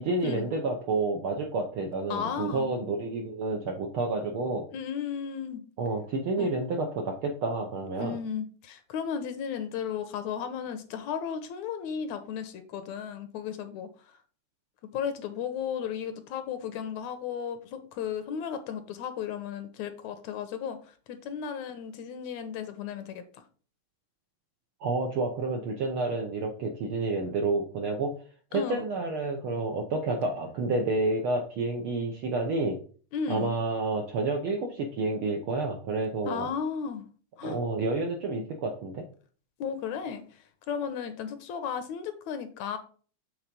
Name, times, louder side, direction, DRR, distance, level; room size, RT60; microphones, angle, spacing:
voice 1, 0.0-4.7 5.8-8.2 24.8-28.1 28.5-32.8 33.3-36.5 37.4-39.0, right 3 dB, 70° right, 2 dB, 1.3 m, -29 dB
voice 2, 2.1-2.7 4.7-5.6 6.4-6.5 8.0-13.9 14.9-20.8 21.1-23.4 28.5-28.9 33.1-33.5 36.2-37.0 37.4-37.6 39.6-40.2 40.7-42.8, left 7 dB, 75° left, 9 dB, 2.0 m, -34 dB
7.3 x 3.7 x 5.2 m, 0.41 s
omnidirectional pair, 3.4 m